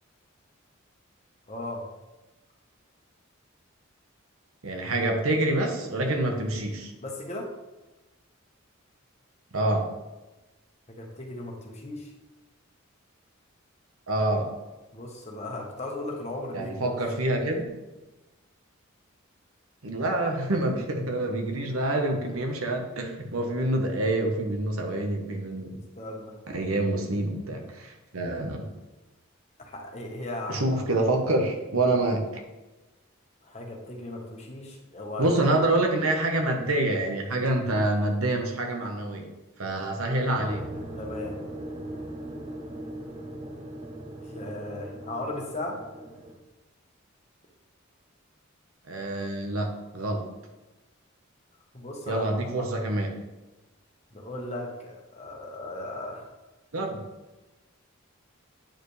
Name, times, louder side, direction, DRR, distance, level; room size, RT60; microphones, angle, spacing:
voice 1, 1.5-1.8 7.0-7.5 10.9-12.1 14.9-17.0 26.0-26.4 29.7-30.8 33.4-35.3 39.8-39.9 41.0-41.4 44.2-45.8 51.7-52.7 54.1-56.3, left 1 dB, 30° left, 0 dB, 1.2 m, -37 dB
voice 2, 4.6-6.9 9.5-9.9 14.1-14.5 16.5-17.7 19.8-25.8 26.5-28.7 30.5-32.2 35.2-39.3 39.6-40.7 48.9-50.2 52.1-53.1 56.7-57.0, right 2 dB, 85° right, 3 dB, 1.2 m, -27 dB
sound 1, 40.3-46.4, right 1 dB, 30° right, 1.0 m, -39 dB
8.9 x 4.9 x 3.3 m, 1.1 s
head